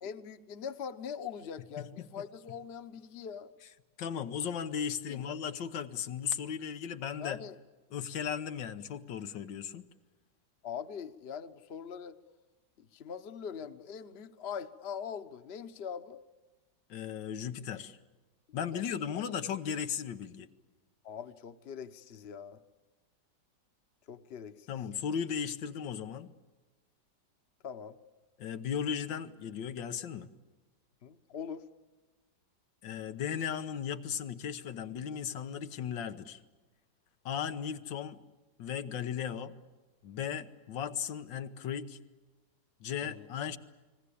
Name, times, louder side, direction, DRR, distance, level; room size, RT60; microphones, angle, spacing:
voice 1, 0.0-3.5 5.1-5.4 7.2-7.5 10.6-12.2 12.8-16.2 18.7-18.8 19.1-19.2 21.0-22.6 24.1-24.7 27.6-28.0 31.0-31.6 43.0-43.3, left 7 dB, 40° left, 10 dB, 1.0 m, -42 dB
voice 2, 1.8-2.1 4.0-7.4 7.9-9.9 16.9-18.0 18.5-20.5 24.7-26.3 28.4-30.3 32.8-36.4 37.3-38.2 38.6-39.5 40.0-42.0 42.8-43.6, left 8 dB, 90° left, 9 dB, 1.7 m, -36 dB
29.5 x 20.5 x 8.5 m, 1.2 s
omnidirectional pair, 1.9 m